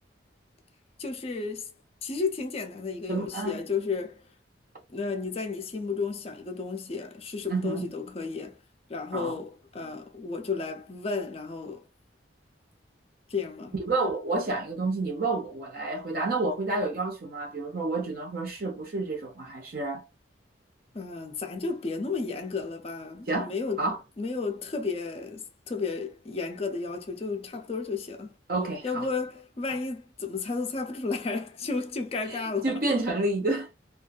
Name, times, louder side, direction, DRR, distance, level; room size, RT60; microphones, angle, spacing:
voice 1, 1.0-1.7 2.0-4.2 4.9-8.6 8.9-11.8 13.3-13.7 20.9-23.8 24.2-28.4 28.8-32.7, left 4 dB, 30° left, 0.4 m, -33 dB
voice 2, 3.1-3.6 7.5-7.9 9.1-9.4 13.7-20.0 23.3-23.5 23.8-24.0 28.5-29.1 32.3-33.7, right 2 dB, 50° right, 0.7 m, -29 dB
2.5 x 2.3 x 2.3 m
head